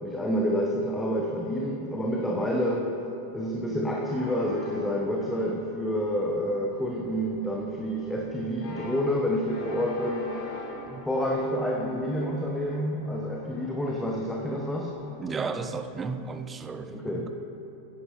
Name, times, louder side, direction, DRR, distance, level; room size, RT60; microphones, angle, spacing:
voice 1, 0.0-2.9 3.3-10.3 11.1-14.9 16.9-17.3, equal, 5° left, -1 dB, 0.9 m, -28 dB
sound 1, 4.0-15.9, left 1 dB, 50° left, 2.4 m, -45 dB
voice 2, 15.2-17.3, right 4 dB, 20° right, 9 dB, 0.5 m, -34 dB
15.0 x 9.7 x 2.9 m, 2.9 s
figure-of-eight pair, 90°, 0 cm